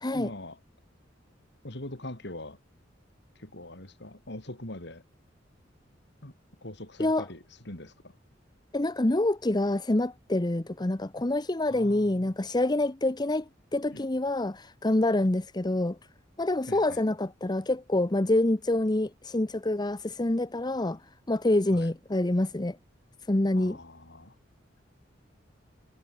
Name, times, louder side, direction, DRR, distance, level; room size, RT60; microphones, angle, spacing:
voice 1, 0.1-0.6 1.6-2.6 3.4-5.0 6.2-6.3 6.6-8.1 11.7-12.3 13.9-14.1 16.7-17.0 21.7-21.9 23.5-24.4, left 1 dB, 65° left, 4.3 m, -42 dB
voice 2, 8.7-16.0 16.4-21.0 21.3-22.8 23.3-23.8, left 1 dB, 20° left, 0.9 m, -26 dB
head